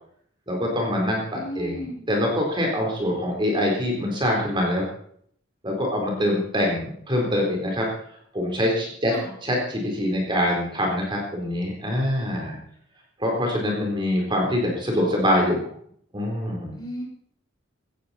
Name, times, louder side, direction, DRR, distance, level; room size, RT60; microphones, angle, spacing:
voice 1, 0.5-4.8 5.6-7.9 8.3-9.1 9.4-12.6 13.2-15.7 16.1-16.8, left 1 dB, 25° right, 0 dB, 4.0 m, -24 dB
voice 2, 1.3-2.0 9.1-9.3 16.7-17.0, equal, 20° left, -1 dB, 5.6 m, -34 dB
17.5 x 15.0 x 4.3 m, 0.64 s
head